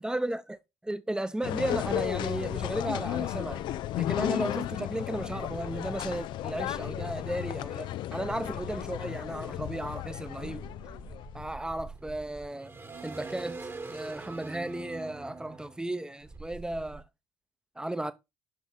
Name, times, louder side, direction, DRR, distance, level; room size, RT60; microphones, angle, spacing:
voice 1, 0.0-3.6 4.0-10.6 11.3-12.7 13.0-17.0 17.8-18.1, right 1 dB, 10° right, 0.8 m, -35 dB
sound 1, 1.4-11.5, left 14 dB, 55° left, 0.4 m, -34 dB
sound 2, 1.8-4.1 5.2-7.7 8.2-17.0, right 3 dB, 25° right, 1.2 m, -45 dB
6.3 x 5.8 x 4.0 m
hypercardioid pair, 55°, 10 cm